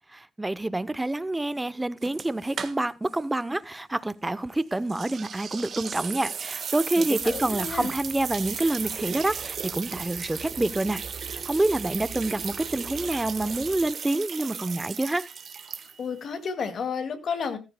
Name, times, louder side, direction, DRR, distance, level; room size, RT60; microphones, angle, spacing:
voice 1, 0.4-11.0 11.3-15.3, right 2 dB, 15° right, 0.7 m, -27 dB
sound 1, 2.0-3.1 3.4-3.5 4.9-16.2, right 6 dB, 50° right, 1.4 m, -36 dB
voice 2, 7.0-7.9 16.0-17.6, left 5 dB, 55° left, 2.0 m, -31 dB
sound 2, 7.2-13.9, right 4 dB, 35° right, 3.6 m, -46 dB
14.5 x 13.5 x 2.2 m
cardioid pair, 90°, 0 cm